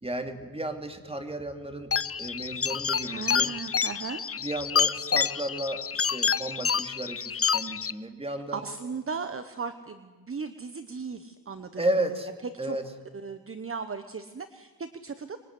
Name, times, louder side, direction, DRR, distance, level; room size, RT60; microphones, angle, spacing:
voice 1, 0.0-3.5 4.4-8.6 11.8-12.3 12.6-12.8, right 1 dB, 15° right, 6 dB, 2.9 m, -33 dB
sound 1, 1.9-7.9, left 7 dB, 40° left, 0.7 m, -28 dB
voice 2, 3.0-4.2 8.5-11.9 12.6-12.8 13.1-15.4, right 5 dB, 35° right, 10 dB, 1.2 m, -37 dB
26.0 x 22.5 x 9.8 m, 1.3 s
wide cardioid pair, 105°, 37 cm